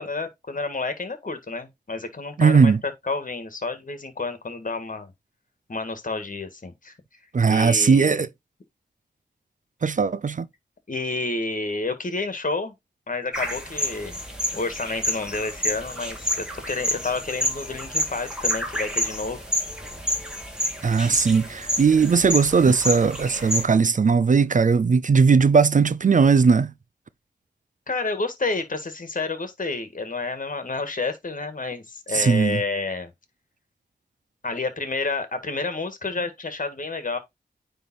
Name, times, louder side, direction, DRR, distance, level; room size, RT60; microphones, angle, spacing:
voice 1, 0.0-5.1 5.7-7.0 7.5-8.3 10.9-12.7 13.1-14.2 14.5-19.4 22.6-22.7 27.9-33.1 34.4-37.2, left 3 dB, 50° left, 1.8 m, -30 dB
voice 2, 2.4-2.8 7.3-8.3 9.8-10.5 20.8-26.7 32.1-32.6, right 5 dB, 50° right, 0.5 m, -18 dB
sound 1, 13.3-23.6, equal, 5° right, 2.5 m, -29 dB
9.3 x 3.5 x 4.2 m
wide cardioid pair, 70°, 17 cm